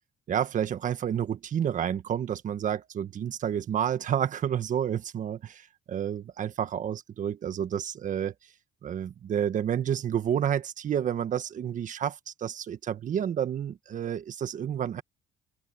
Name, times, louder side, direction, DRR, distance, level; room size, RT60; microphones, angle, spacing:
voice 1, 0.3-8.3 8.8-15.0, right 9 dB, 50° right, 1.5 m, -30 dB
open air
cardioid pair, 110°, 17 cm